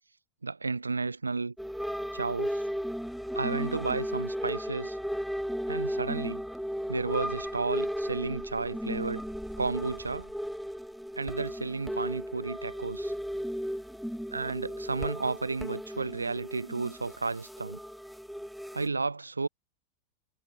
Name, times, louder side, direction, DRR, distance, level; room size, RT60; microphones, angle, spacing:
voice 1, 0.4-1.5 2.1-2.7 3.4-5.0 5.7-6.4 6.9-9.2 9.6-10.3 11.2-13.1 14.3-17.8 18.7-19.5, right 4 dB, 80° right, 7.6 m, -32 dB
sound 1, 1.6-18.9, equal, ahead, 1.4 m, -35 dB
figure-of-eight pair, 90°, 0 cm